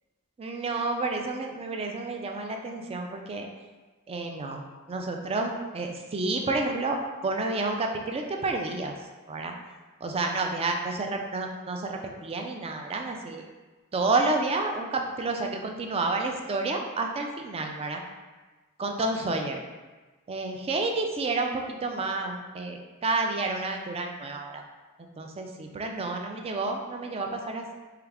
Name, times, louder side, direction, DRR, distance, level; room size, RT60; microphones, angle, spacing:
voice 1, 0.4-3.5 4.1-9.0 9.3-9.5 10.0-13.4 13.9-18.0 18.8-19.6 20.3-24.6 25.2-27.7, right 3 dB, 25° right, 3 dB, 0.3 m, -30 dB
4.7 x 2.3 x 3.4 m, 1.3 s
head